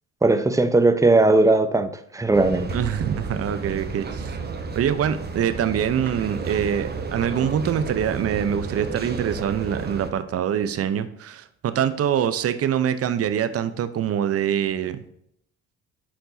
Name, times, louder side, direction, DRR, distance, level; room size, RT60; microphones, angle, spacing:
voice 1, 0.2-2.7, right 2 dB, 10° right, 9 dB, 0.8 m, -18 dB
sound 1, 2.3-10.1, right 4 dB, 30° right, 1.1 m, -32 dB
voice 2, 2.7-4.4 4.7-15.0, right 9 dB, 45° right, 11 dB, 0.8 m, -24 dB
11.5 x 4.5 x 2.8 m, 0.72 s
hypercardioid pair, 60°, 33 cm